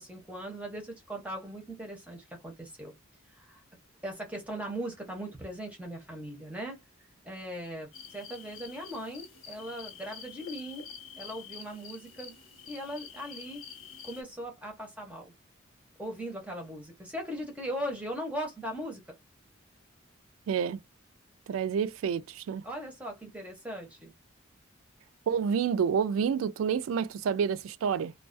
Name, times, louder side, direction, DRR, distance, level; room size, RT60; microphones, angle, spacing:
voice 1, 0.0-2.9 3.3-3.6 4.0-6.8 7.2-10.9 11.2-12.3 12.7-13.6 14.0-15.3 16.0-19.0 22.6-24.1, equal, 5° right, 0.7 m, -39 dB
sound 1, 7.9-14.2, left 7 dB, 85° left, 1.1 m, -47 dB
voice 2, 20.5-20.8 21.5-22.6 25.3-28.1, right 7 dB, 85° right, 0.3 m, -28 dB
2.3 x 2.3 x 2.5 m
head